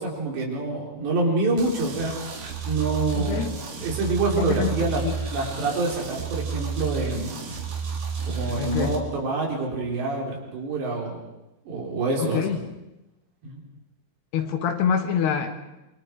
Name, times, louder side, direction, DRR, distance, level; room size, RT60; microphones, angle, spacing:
voice 1, 0.0-3.4 3.8-5.0 5.3-7.4 8.3-11.3 11.7-12.5 13.4-13.6, right 3 dB, 75° right, -1 dB, 6.2 m, -27 dB
sound 1, 1.6-9.0, right 5 dB, 55° right, 4.0 m, -31 dB
voice 2, 3.2-3.5 4.3-4.7 5.0-5.2 8.6-9.0 12.2-12.6 14.3-15.5, left 7 dB, 70° left, 5 dB, 3.5 m, -26 dB
27.0 x 24.5 x 4.7 m, 0.96 s
omnidirectional pair, 5.0 m